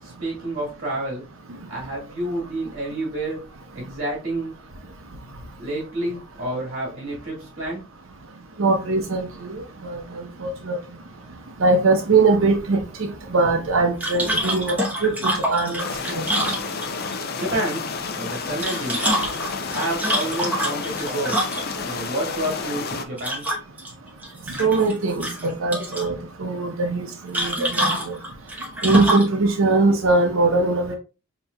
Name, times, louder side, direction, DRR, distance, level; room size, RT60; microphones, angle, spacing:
voice 1, 0.0-1.2 1.6-3.4 3.7-4.5 5.6-7.8 17.3-17.8 18.1-19.0 19.7-21.4 21.8-23.4, right 1 dB, 50° right, -3 dB, 1.6 m, -29 dB
voice 2, 8.6-10.8 11.6-14.8 15.0-15.8 16.1-16.2 24.6-28.1 28.8-30.9, right 3 dB, 80° right, 3 dB, 0.7 m, -21 dB
sound 1, 14.0-17.1 18.4-21.9 23.2-23.9 24.2-24.9 25.2-26.1 27.3-29.4, right 1 dB, 10° right, 0.9 m, -25 dB
sound 2, 15.8-23.1, left 4 dB, 50° left, 0.5 m, -30 dB
5.5 x 2.9 x 2.2 m, 0.32 s
head